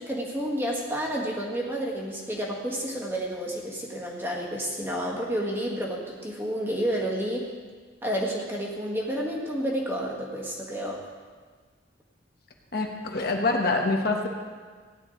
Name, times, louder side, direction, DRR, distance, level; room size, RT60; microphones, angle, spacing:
voice 1, 0.0-7.5 8.0-11.1, equal, 10° right, -2 dB, 1.7 m, -30 dB
voice 2, 12.7-14.3, left 3 dB, 50° left, 2 dB, 1.2 m, -25 dB
16.5 x 10.5 x 3.9 m, 1.5 s
head